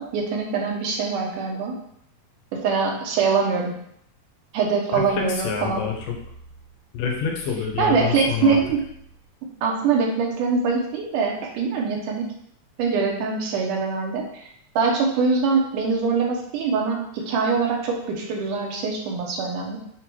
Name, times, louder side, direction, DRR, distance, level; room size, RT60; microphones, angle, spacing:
voice 1, 0.0-1.8 2.5-3.7 4.5-5.8 7.8-8.9 9.6-12.3 12.8-14.5 14.8-19.8, right 5 dB, 80° right, 0 dB, 2.5 m, -23 dB
voice 2, 4.9-6.2 6.9-8.6, left 6 dB, 90° left, 1 dB, 2.9 m, -27 dB
6.6 x 3.9 x 4.7 m, 0.70 s
omnidirectional pair, 3.7 m